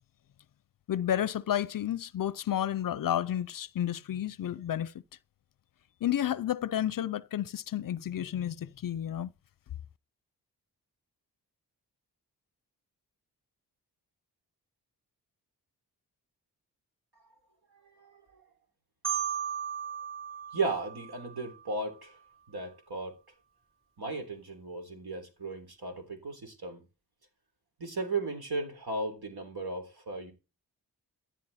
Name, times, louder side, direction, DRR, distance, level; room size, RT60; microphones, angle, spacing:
voice 1, 0.9-4.9 6.0-9.3, left 11 dB, 55° left, 0.6 m, -31 dB
voice 2, 17.9-18.4 20.5-22.2 22.5-23.1 24.0-26.8 27.8-30.3, right 3 dB, 70° right, 3.6 m, -35 dB
Marimba xylophone, 19.0-21.9, right 8 dB, 30° right, 3.1 m, -36 dB
15.5 x 10.5 x 4.2 m
cardioid pair, 55°, 40 cm